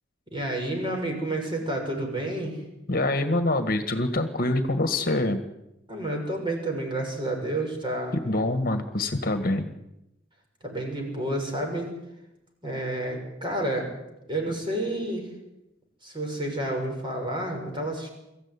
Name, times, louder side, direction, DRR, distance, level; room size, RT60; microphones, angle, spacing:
voice 1, 0.3-2.6 5.9-8.2 10.6-11.9 12.6-13.9 14.3-15.3 16.0-18.1, right 1 dB, 25° right, 2 dB, 6.9 m, -30 dB
voice 2, 2.9-5.4 8.3-9.7, left 2 dB, 50° left, 8 dB, 1.8 m, -25 dB
23.5 x 15.0 x 9.9 m, 0.90 s
head